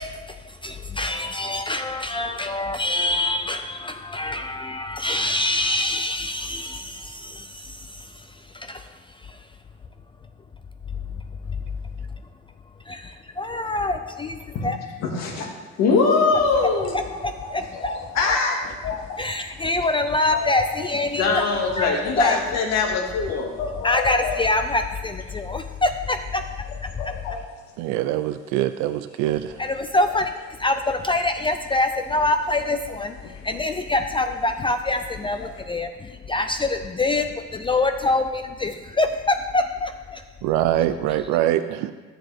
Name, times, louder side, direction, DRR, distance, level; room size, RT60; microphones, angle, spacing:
voice 1, 0.0-9.4 12.9-14.8 16.9-17.9 19.2-21.5 21.7-22.4 23.8-26.4 26.8-27.1 29.6-30.3 30.6-40.2, left 2 dB, 20° left, 0.4 m, -25 dB
voice 2, 15.0-15.5 15.8-16.9 18.1-18.6 21.2-23.5, left 4 dB, 60° left, 2.1 m, -21 dB
sound 1, 16.5-19.2 19.5-23.1 23.3-25.6 25.8-25.9 26.2-27.7 29.1-31.1 31.7-31.8 32.4-33.7 34.0-34.1 34.3-34.6 34.9-35.0 35.2-35.6, left 5 dB, 80° left, 1.3 m, -35 dB
voice 3, 27.8-29.6 40.4-41.9, right 13 dB, 90° right, 0.5 m, -23 dB
13.5 x 7.8 x 3.5 m
cardioid pair, 125°, 29 cm